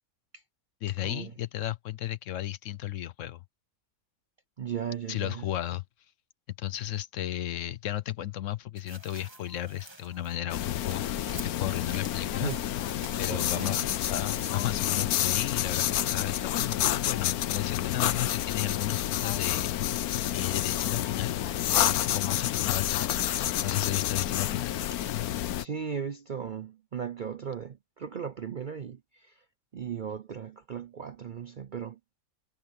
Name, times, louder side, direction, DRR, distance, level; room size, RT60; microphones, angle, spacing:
voice 1, 0.8-3.4 5.1-5.8 6.6-12.5 13.2-13.8 14.1-20.0 20.3-21.4 21.7-23.2 23.6-25.1, left 13 dB, 65° left, 0.9 m, -34 dB
voice 2, 4.6-5.4 12.3-12.6 13.3-13.9 25.6-29.4 29.7-32.1, right 7 dB, 55° right, 0.5 m, -37 dB
sound 1, 8.8-15.1 15.5-15.6, right 2 dB, 20° right, 1.6 m, -49 dB
sound 2, 8.9-10.6 10.9-19.8 20.2-22.0 22.4-24.7, left 1 dB, 15° left, 5.2 m, -61 dB
sound 3, 10.5-25.6, left 12 dB, 85° left, 1.2 m, -29 dB
omnidirectional pair, 1.5 m